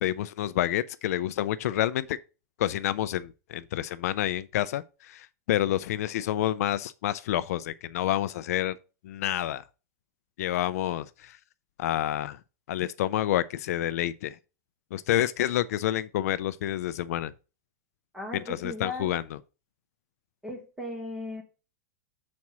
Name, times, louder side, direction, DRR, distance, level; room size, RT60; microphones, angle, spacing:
voice 1, 0.0-2.2 2.6-8.8 9.0-9.6 10.4-11.4 11.8-12.4 12.7-14.4 14.9-17.3 18.3-19.2, left 13 dB, 70° left, 0.4 m, -28 dB
voice 2, 18.1-19.1 20.4-21.4, left 2 dB, 5° right, 1.4 m, -37 dB
6.0 x 4.2 x 6.0 m
supercardioid pair, 170°, 9 cm